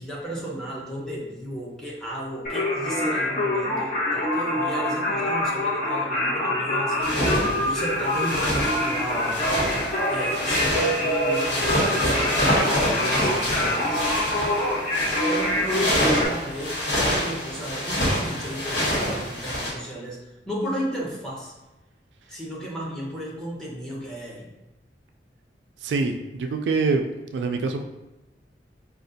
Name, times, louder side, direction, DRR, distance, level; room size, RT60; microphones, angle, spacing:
voice 1, 0.0-7.2 7.5-14.0 15.3-21.5 22.3-24.5, right 1 dB, 5° left, -5 dB, 0.9 m, -34 dB
Singing, 2.4-16.2, left 1 dB, 45° left, 1.1 m, -25 dB
sound 1, 7.0-19.7, equal, 80° left, 1.4 m, -27 dB
voice 2, 25.8-27.0 27.3-27.8, right 4 dB, 80° right, 5 dB, 0.3 m, -24 dB
5.0 x 2.4 x 2.6 m, 1.0 s
head